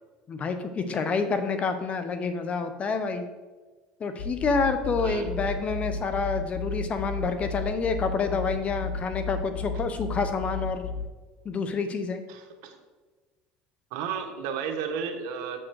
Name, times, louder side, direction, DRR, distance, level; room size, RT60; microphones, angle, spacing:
voice 1, 0.3-3.2 4.0-10.9 11.4-12.2, left 4 dB, 35° left, 9 dB, 0.7 m, -28 dB
sound 1, 4.2-11.0, left 4 dB, 90° left, 1.0 m, -34 dB
voice 2, 5.0-5.3 12.3-12.8 13.9-15.6, right 7 dB, 75° right, 4 dB, 1.3 m, -33 dB
7.5 x 6.3 x 4.6 m, 1.3 s
supercardioid pair, 105°, 4 cm